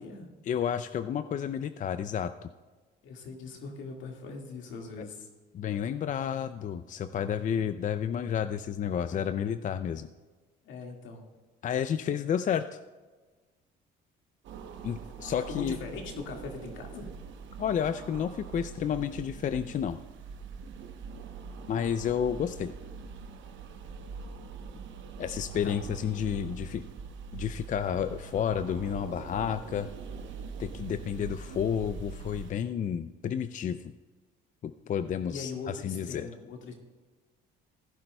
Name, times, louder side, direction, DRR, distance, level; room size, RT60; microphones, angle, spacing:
voice 1, 0.4-2.3 5.0-5.1 5.5-10.1 11.6-12.8 14.8-15.8 17.6-20.0 21.7-22.7 25.2-26.8 27.3-29.9 30.6-33.9 34.6-36.3, left 8 dB, 40° left, 11 dB, 0.4 m, -31 dB
voice 2, 3.0-5.3 10.6-11.2 15.4-17.1 25.6-25.8 35.3-36.7, left 4 dB, 70° left, 2 dB, 1.9 m, -41 dB
sound 1, 14.4-32.5, right 5 dB, 65° right, 1.0 m, -43 dB
16.0 x 10.0 x 2.3 m, 1.3 s
supercardioid pair, 80°, 21 cm